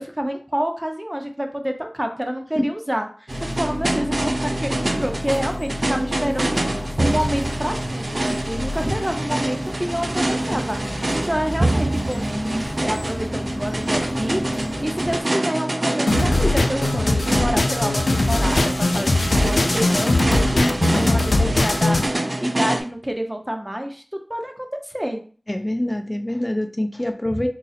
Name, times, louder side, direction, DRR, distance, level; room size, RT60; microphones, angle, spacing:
voice 1, 0.0-24.0 24.3-25.2, equal, 15° right, 4 dB, 0.7 m, -28 dB
sound 1, 3.3-15.2, left 1 dB, 45° left, 1.0 m, -32 dB
sound 2, 3.3-22.8, right 1 dB, 55° right, 0.4 m, -25 dB
sound 3, 16.1-22.1, left 2 dB, 90° left, 0.3 m, -20 dB
voice 2, 25.5-27.5, left 1 dB, 25° left, 6 dB, 0.5 m, -25 dB
3.8 x 2.0 x 4.1 m, 0.40 s
wide cardioid pair, 40°, 0 cm